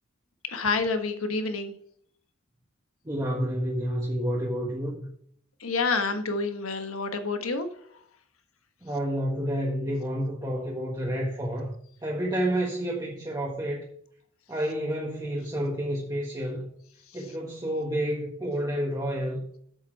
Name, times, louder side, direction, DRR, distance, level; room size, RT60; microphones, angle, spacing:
voice 1, 0.4-1.7 5.6-7.7, left 4 dB, 85° left, 1.4 m, -28 dB
voice 2, 3.0-5.1 8.8-11.7 12.0-13.8 14.5-16.7 17.1-19.4, equal, 20° right, 1.5 m, -29 dB
7.9 x 7.1 x 4.6 m
head